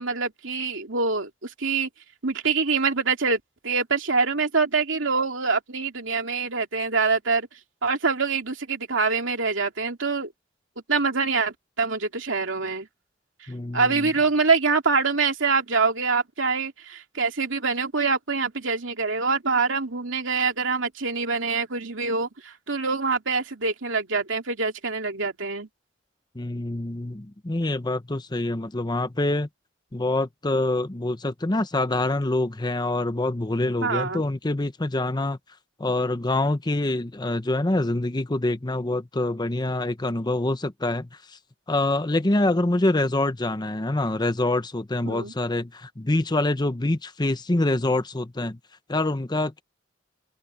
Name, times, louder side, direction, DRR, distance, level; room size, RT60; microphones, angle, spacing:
voice 1, 0.0-1.9 2.2-7.5 7.8-10.3 10.9-12.9 13.7-25.7 33.8-34.2 45.1-45.3, right 4 dB, 75° right, 2.8 m, -25 dB
voice 2, 13.5-14.1 26.3-29.5 29.9-35.4 35.8-41.1 41.7-48.6 48.9-49.6, left 2 dB, 20° left, 0.8 m, -25 dB
open air
head